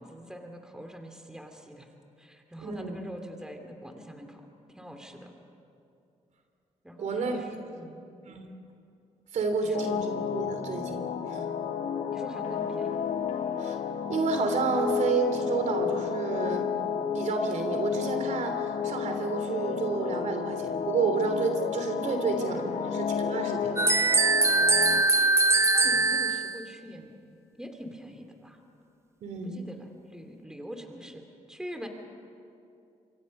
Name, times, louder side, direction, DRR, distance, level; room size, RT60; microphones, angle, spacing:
voice 1, 0.0-1.9 2.2-4.5 4.7-5.3 6.8-8.0 9.6-9.8 12.1-13.0 22.1-23.0 25.6-27.1 27.6-28.6 29.4-31.2 31.5-31.9, equal, 5° right, 4 dB, 2.7 m, -44 dB
voice 2, 2.6-3.0 7.0-7.3 8.3-8.5 9.3-11.0 11.3-11.5 13.6-13.8 14.1-16.7 17.1-22.6 22.9-23.8 29.2-29.6, right 4 dB, 70° right, 5 dB, 3.0 m, -30 dB
sound 1, 9.7-25.0, left 7 dB, 70° left, 1.3 m, -32 dB
sound 2, 23.8-26.6, right 3 dB, 20° right, 1.0 m, -22 dB
27.0 x 24.0 x 5.5 m, 2.6 s
cardioid pair, 85°, 13 cm